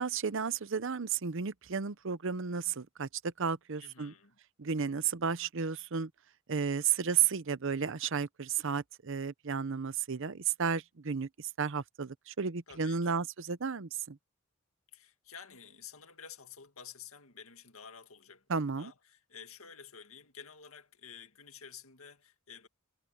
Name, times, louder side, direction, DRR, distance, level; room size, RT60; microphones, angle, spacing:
voice 1, 0.0-4.1 4.6-6.1 6.5-14.2 18.5-18.9, right 6 dB, 65° right, 0.7 m, -33 dB
voice 2, 3.8-4.4 12.7-13.3 14.9-22.7, left 7 dB, 85° left, 2.1 m, -51 dB
head